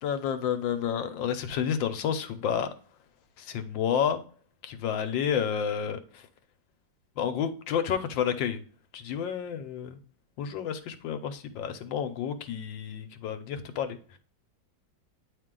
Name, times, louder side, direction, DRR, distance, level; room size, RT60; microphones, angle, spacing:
voice 1, 0.0-2.7 3.4-4.2 4.6-6.2 7.2-8.6 8.9-10.0 10.4-14.0, left 8 dB, 85° left, 1.4 m, -30 dB
9.0 x 3.1 x 3.7 m
omnidirectional pair, 2.0 m